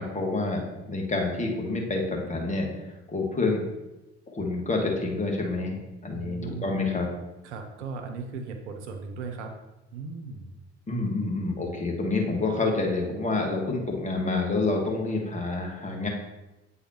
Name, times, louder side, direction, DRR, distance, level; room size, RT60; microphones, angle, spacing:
voice 1, 0.0-3.6 4.3-7.1 10.9-16.1, left 3 dB, 20° left, 0 dB, 1.5 m, -28 dB
voice 2, 6.1-6.7 7.4-9.5 9.9-10.5, right 4 dB, 80° right, 5 dB, 0.8 m, -37 dB
8.5 x 4.0 x 2.9 m, 1.0 s
hypercardioid pair, 55°, 34 cm